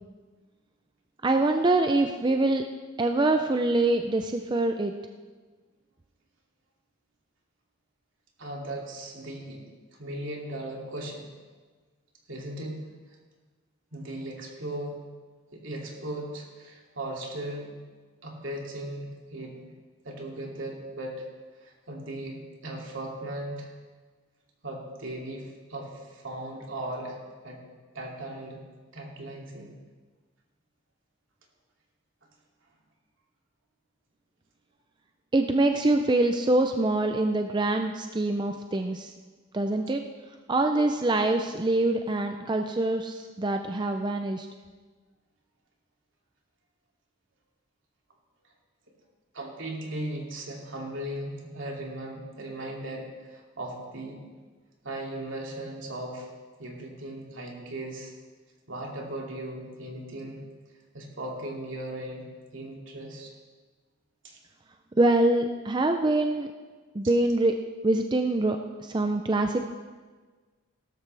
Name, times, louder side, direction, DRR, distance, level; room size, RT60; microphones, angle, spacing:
voice 1, 1.2-2.6 3.0-4.9 35.3-39.1 39.5-40.0 40.5-44.5 65.0-66.5 66.9-67.6 67.8-69.7, right 2 dB, 20° right, 5 dB, 0.5 m, -24 dB
voice 2, 8.4-9.6 10.0-11.3 12.3-13.2 13.9-15.0 15.5-17.7 18.2-19.7 20.0-21.3 21.6-23.7 24.6-27.6 27.9-28.6 28.9-29.7 49.3-54.2 54.8-56.3 56.6-58.1 58.7-60.4 60.9-62.3 62.5-63.3 64.2-64.4, right 1 dB, 70° right, -1 dB, 2.6 m, -37 dB
17.0 x 13.0 x 3.4 m, 1.4 s
head